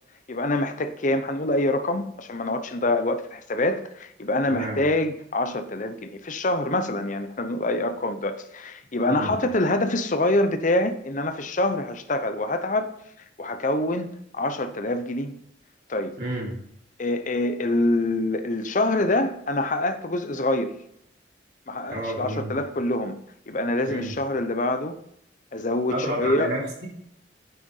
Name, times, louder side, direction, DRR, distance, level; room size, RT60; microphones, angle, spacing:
voice 1, 0.3-12.9 13.4-14.1 14.3-15.4 15.9-16.2 17.0-20.7 21.7-23.2 23.5-25.0 25.5-26.5, left 2 dB, 45° left, 0.8 m, -25 dB
voice 2, 4.5-4.8 9.1-9.3 16.2-16.5 21.9-22.5 23.9-24.1 25.9-26.9, right 1 dB, 60° right, 3.7 m, -30 dB
9.4 x 6.8 x 5.5 m
head